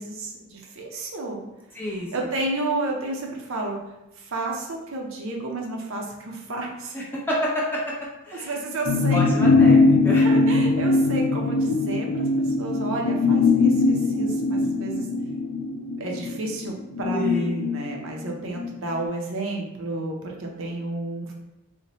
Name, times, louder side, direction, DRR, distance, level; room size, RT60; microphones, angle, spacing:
voice 1, 0.0-1.4 2.1-3.8 4.2-7.0 8.4-9.2 10.2-15.1 16.0-21.3, right 2 dB, 65° right, 0 dB, 0.6 m, -31 dB
voice 2, 1.7-2.1 6.9-7.8 8.2-8.6 9.1-10.3 17.1-17.6, equal, 10° left, -5 dB, 0.6 m, -28 dB
sound 1, 8.9-18.7 19.0-19.1, left 3 dB, 50° left, 0.3 m, -21 dB
4.1 x 2.1 x 2.9 m, 0.96 s
head